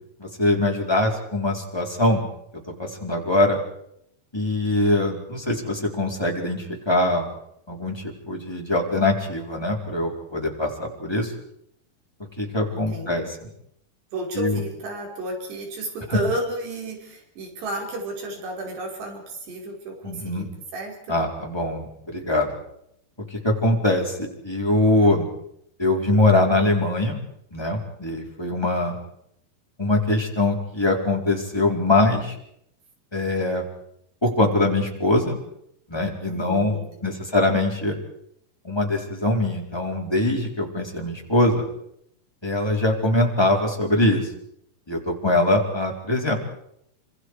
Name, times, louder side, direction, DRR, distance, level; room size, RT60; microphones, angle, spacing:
voice 1, 0.2-2.2 2.8-3.6 4.3-7.3 7.7-11.3 12.4-13.4 14.3-14.6 16.1-16.2 20.0-20.4 21.1-22.5 23.3-25.2 25.8-27.2 27.5-28.9 29.8-32.3 33.1-33.6 34.2-35.4 35.9-38.0 38.6-41.7 42.4-44.3 44.9-46.3, left 2 dB, 5° left, -1 dB, 4.1 m, -22 dB
voice 2, 12.7-13.3 14.1-20.5 20.7-21.2 36.3-37.3, right 1 dB, 90° right, 1 dB, 7.1 m, -32 dB
28.0 x 26.5 x 4.9 m, 0.74 s
omnidirectional pair, 4.7 m